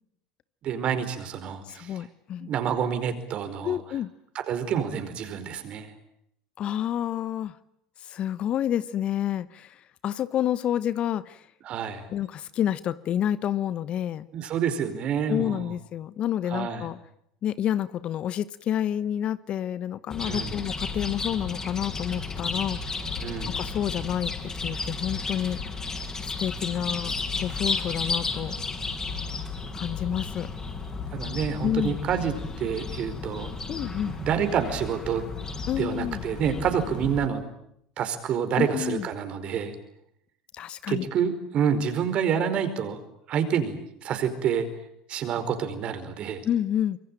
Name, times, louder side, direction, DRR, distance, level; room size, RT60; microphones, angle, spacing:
voice 1, 0.6-2.1 2.4-3.8 4.5-5.9 11.6-12.1 14.3-15.7 16.5-16.9 20.2-20.5 23.2-23.6 31.1-33.5 33.8-35.3 35.8-37.4 38.0-39.7 40.9-43.0 43.3-44.7 45.1-46.5, right 7 dB, 45° right, 4.8 m, -28 dB
voice 2, 1.7-2.5 3.6-4.1 6.6-7.6 8.0-11.5 12.1-14.3 15.3-17.0 17.4-22.8 23.5-24.3 24.6-25.6 26.4-28.6 29.7-30.5 31.6-32.0 33.7-34.1 35.7-36.2 38.6-39.1 40.5-41.1 46.4-47.0, left 10 dB, 45° left, 1.0 m, -29 dB
Chirp tweet, 20.1-37.3, left 4 dB, 25° left, 6.6 m, -33 dB
25.5 x 23.0 x 9.1 m
hypercardioid pair, 80°, 3 cm